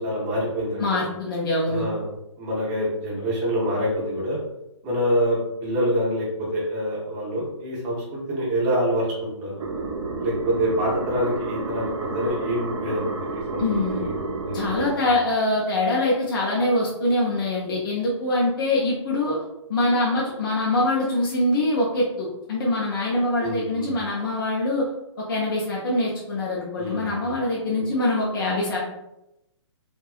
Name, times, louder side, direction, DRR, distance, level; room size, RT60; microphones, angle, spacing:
voice 1, 0.0-1.0 1.7-2.1 2.4-4.4 4.8-9.6 10.2-13.6 13.9-15.1 23.4-23.9 26.8-27.3, equal, 10° right, -6 dB, 0.5 m, -26 dB
voice 2, 0.8-1.8 13.6-14.0 14.5-19.4 19.7-24.8 25.3-28.8, left 2 dB, 45° left, -4 dB, 0.5 m, -24 dB
sound 1, 9.6-15.0, right 3 dB, 90° right, 0.5 m, -30 dB
2.7 x 2.2 x 2.3 m, 0.88 s
hypercardioid pair, 170°, 16 cm